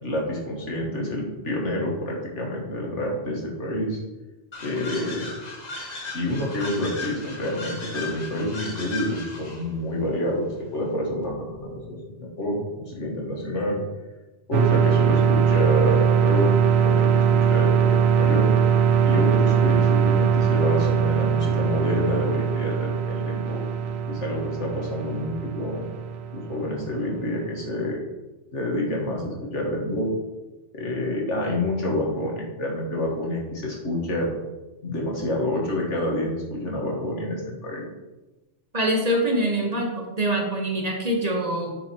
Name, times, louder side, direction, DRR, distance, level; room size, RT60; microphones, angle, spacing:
voice 1, 0.0-4.0 4.6-5.3 6.1-13.8 14.5-16.5 16.8-18.5 19.0-23.6 24.1-25.9 26.3-28.0 28.5-30.2 30.7-34.3 34.8-37.9, left 1 dB, 85° left, -2 dB, 2.1 m, -28 dB
sound 1, 4.5-9.7, left 3 dB, 40° left, 1.1 m, -36 dB
sound 2, 14.5-27.0, right 7 dB, 70° right, 0.9 m, -21 dB
voice 2, 38.7-41.8, right 1 dB, 35° right, 1 dB, 1.2 m, -24 dB
8.9 x 5.1 x 4.5 m, 1.1 s
omnidirectional pair, 1.2 m